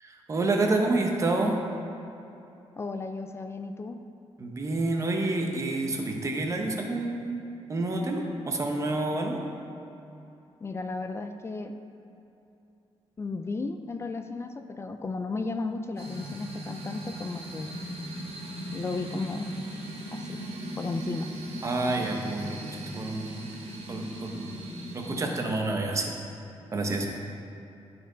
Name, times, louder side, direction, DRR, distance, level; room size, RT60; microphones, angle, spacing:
voice 1, 0.3-1.6 4.4-7.4 7.7-9.4 21.6-23.3 23.9-24.5 24.9-26.1 26.7-27.1, right 2 dB, 30° right, 1 dB, 0.8 m, -28 dB
voice 2, 2.8-4.0 10.6-11.7 13.2-17.8 18.7-19.5 20.1-20.4 20.8-21.3, left 3 dB, 25° left, 7 dB, 0.3 m, -34 dB
sound 1, 16.0-25.4, right 1 dB, 70° right, 1.4 m, -38 dB
13.0 x 4.4 x 3.9 m, 2.8 s
wide cardioid pair, 175°, 11 cm